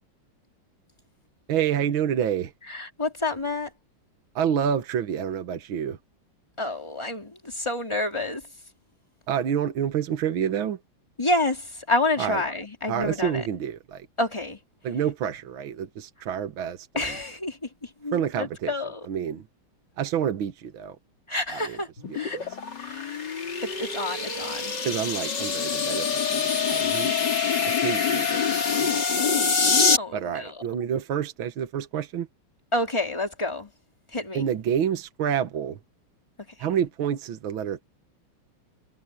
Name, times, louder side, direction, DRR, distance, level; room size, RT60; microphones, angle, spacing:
voice 1, 1.5-2.5 4.4-6.0 9.3-10.8 12.2-12.4 12.9-14.1 14.8-17.2 18.1-18.7 19.1-19.5 20.0-21.0 21.7-21.8 22.1-22.2 24.8-27.1 27.6-29.1 30.1-32.3 34.3-35.8 36.6-37.8, right 8 dB, 70° right, 2.1 m, -28 dB
voice 2, 2.7-3.7 6.6-8.4 11.2-13.4 14.2-14.6 16.9-19.1 21.3-21.9 22.1-22.4 22.8-23.3 23.6-24.7 30.0-30.5 32.7-33.7 34.1-34.4 36.6-36.7, left 2 dB, 15° left, 3.3 m, -29 dB
sound 1, 22.0-30.0, left 5 dB, 55° left, 3.4 m, -25 dB
omnidirectional pair, 2.3 m